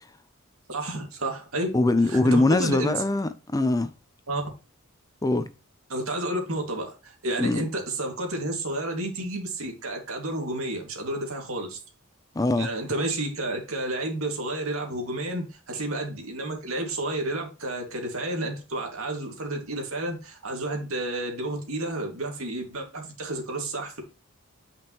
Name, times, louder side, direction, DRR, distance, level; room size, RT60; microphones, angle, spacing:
voice 1, 0.7-1.7 2.1-3.0 4.3-4.4 5.9-11.8 12.6-24.0, right 1 dB, 80° right, 2.3 m, -31 dB
voice 2, 1.7-3.9 5.2-5.5 7.4-7.6 12.4-12.7, left 2 dB, 15° left, 0.5 m, -22 dB
8.9 x 5.2 x 3.0 m
head